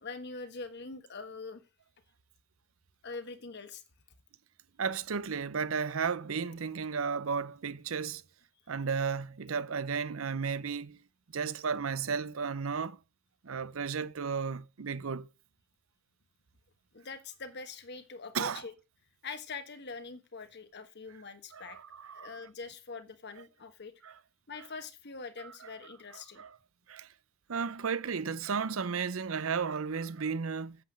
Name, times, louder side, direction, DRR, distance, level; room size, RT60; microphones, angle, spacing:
voice 1, 0.0-1.6 3.0-3.8 16.9-18.7 19.2-21.8 22.1-23.9 24.5-26.4, left 4 dB, 55° left, 1.4 m, -43 dB
voice 2, 4.8-8.2 8.7-11.0 11.3-13.0 13.4-15.3 18.3-18.6 21.5-22.3 24.0-24.2 25.4-25.5 26.4-26.6 26.9-27.1 27.5-30.8, right 5 dB, 75° right, 0.7 m, -34 dB
8.5 x 7.8 x 6.4 m
head